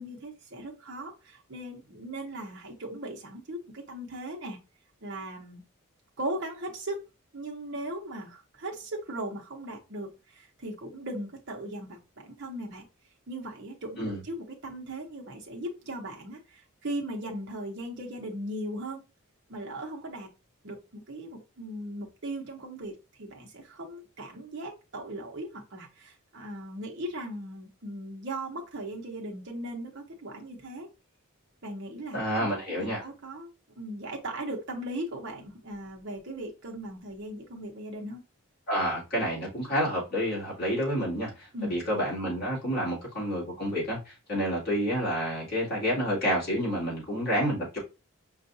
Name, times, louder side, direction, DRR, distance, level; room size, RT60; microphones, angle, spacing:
voice 1, 0.0-4.6 5.0-5.6 6.2-7.0 7.3-12.9 13.3-19.0 19.5-20.3 20.6-30.9 31.6-33.5 33.8-38.2 41.5-41.7, right 1 dB, 50° right, 0.8 m, -38 dB
voice 2, 32.1-33.0 38.7-47.8, equal, 45° left, 2.3 m, -29 dB
5.4 x 2.4 x 2.6 m
head